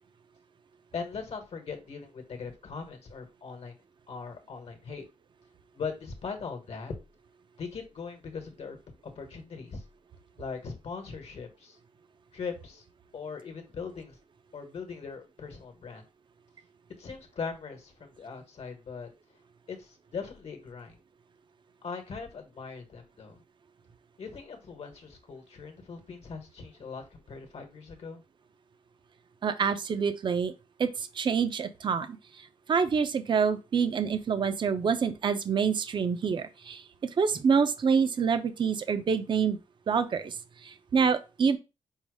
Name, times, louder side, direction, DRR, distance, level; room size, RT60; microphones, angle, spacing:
voice 1, 0.9-3.7 4.1-5.0 5.7-6.9 7.6-8.8 9.0-9.8 10.4-11.8 12.3-12.8 13.1-14.2 14.5-16.0 17.0-19.1 19.7-21.0 21.8-23.4 24.2-28.2, left 5 dB, 55° left, 1.1 m, -40 dB
voice 2, 29.4-30.5 30.8-32.2 32.7-36.8 37.2-39.6 39.9-40.3 40.6-41.6, right 6 dB, 40° right, 0.5 m, -26 dB
5.5 x 2.0 x 4.7 m
wide cardioid pair, 135°, 12 cm